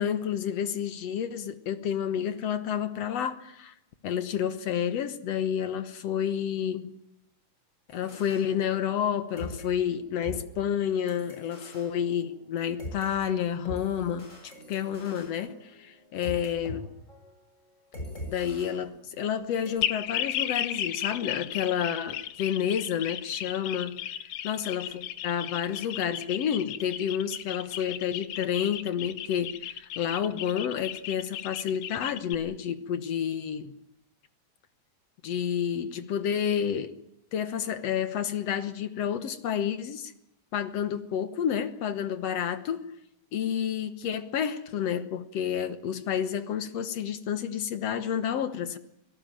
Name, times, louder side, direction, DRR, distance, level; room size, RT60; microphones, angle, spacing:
voice 1, 0.0-3.7 4.0-6.9 7.9-16.9 18.3-24.0 24.4-33.7 35.2-36.9 37.3-40.1 40.5-42.9 43.3-48.8, left 9 dB, 60° left, 12 dB, 2.0 m, -30 dB
sound 1, 7.9-9.1 9.4-13.1 13.7-16.8 17.1-17.3 17.9-19.4 19.7-19.8, left 1 dB, 20° left, 7.3 m, -43 dB
sound 2, 19.8-32.4, left 12 dB, 80° left, 2.7 m, -35 dB
25.0 x 18.0 x 9.0 m, 0.81 s
omnidirectional pair, 3.6 m